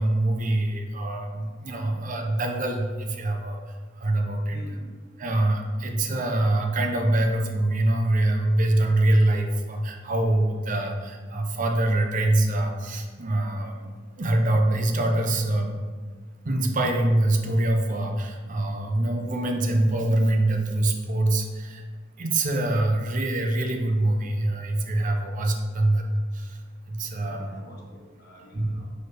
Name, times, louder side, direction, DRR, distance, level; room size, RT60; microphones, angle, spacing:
voice 1, 0.0-3.6 4.0-4.6 5.2-13.9 14.2-15.7 16.4-21.8 22.2-26.1 26.3-26.6 26.9-27.6 28.5-28.7, right 1 dB, 40° right, 3 dB, 0.7 m, -24 dB
voice 2, 4.5-4.9 27.2-28.9, left 2 dB, 55° left, -2 dB, 1.3 m, -46 dB
4.5 x 4.4 x 4.7 m, 1.5 s
head